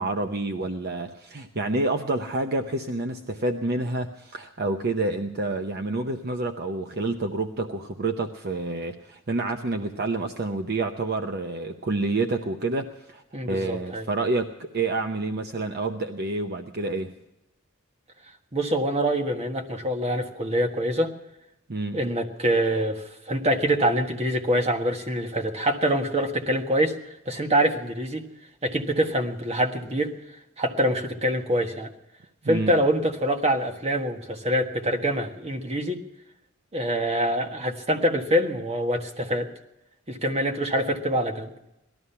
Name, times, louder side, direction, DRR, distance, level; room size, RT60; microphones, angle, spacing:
voice 1, 0.0-17.1 21.7-22.0 32.4-32.7, right 2 dB, 50° right, 6 dB, 0.8 m, -28 dB
voice 2, 13.3-14.0 18.5-21.1 21.9-28.3 28.6-30.1 30.6-31.9 32.5-36.0 36.7-39.5 40.1-41.5, right 1 dB, 30° right, 4 dB, 1.5 m, -25 dB
18.5 x 13.0 x 5.7 m, 0.88 s
head